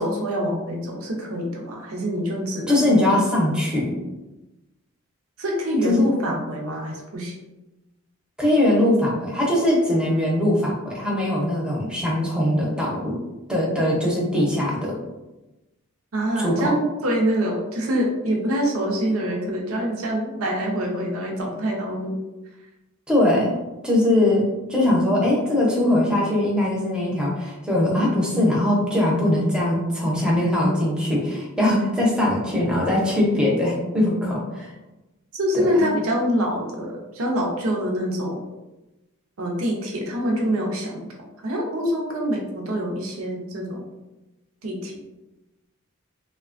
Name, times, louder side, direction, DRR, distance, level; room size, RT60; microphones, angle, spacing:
voice 1, 0.0-2.9 5.4-7.4 16.1-22.2 35.3-38.4 39.4-41.1 41.4-43.8 44.6-45.0, equal, 70° right, 0 dB, 0.6 m, -25 dB
voice 2, 2.7-3.9 5.8-6.1 8.4-13.2 13.5-15.0 16.4-16.7 23.1-23.6 23.8-34.7 35.5-35.8, left 1 dB, 5° right, -4 dB, 0.6 m, -21 dB
3.1 x 2.2 x 2.4 m, 1.0 s
head